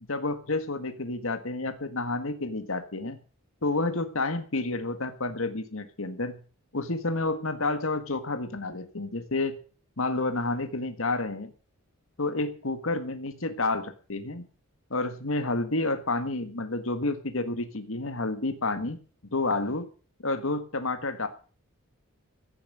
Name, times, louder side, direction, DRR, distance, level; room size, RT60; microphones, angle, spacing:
voice 1, 0.1-3.2 3.6-6.4 6.7-9.6 10.0-11.5 12.2-14.4 14.9-19.0 19.3-19.9 20.2-21.3, left 2 dB, 75° left, 9 dB, 1.7 m, -30 dB
16.0 x 7.3 x 9.0 m, 0.39 s
head